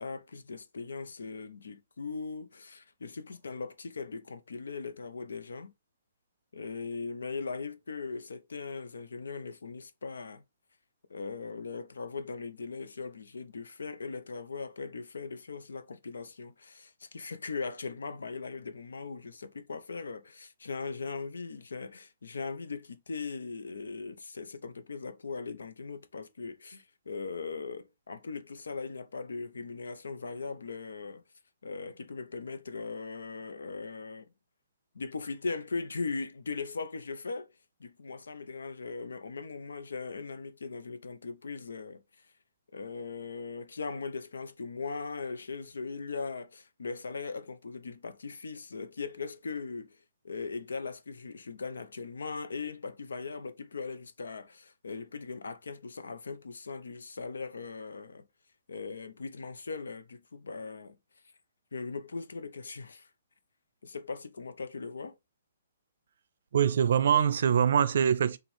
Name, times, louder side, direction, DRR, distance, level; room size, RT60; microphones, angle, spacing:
voice 1, 0.0-5.7 6.5-10.4 11.1-31.2 31.6-34.3 34.9-37.5 37.8-42.0 42.7-50.0 50.2-58.2 58.7-61.0 61.7-63.1 63.8-65.2, left 4 dB, 85° left, 0.8 m, -39 dB
voice 2, 66.5-68.4, right 8 dB, 65° right, 0.5 m, -24 dB
6.1 x 2.4 x 3.4 m
hypercardioid pair, 150°, 0 cm